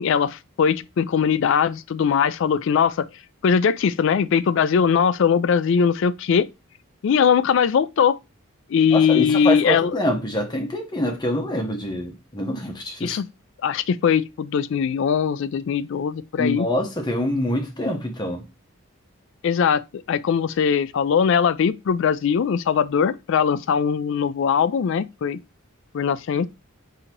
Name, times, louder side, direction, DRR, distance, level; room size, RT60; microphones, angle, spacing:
voice 1, 0.0-3.1 3.4-6.5 7.0-8.2 8.7-10.0 13.0-13.2 13.6-16.7 19.4-25.4 25.9-26.5, left 7 dB, 60° left, 0.3 m, -20 dB
voice 2, 8.9-13.2 16.4-18.4, left 1 dB, 20° left, 0.9 m, -25 dB
3.8 x 2.8 x 4.5 m
head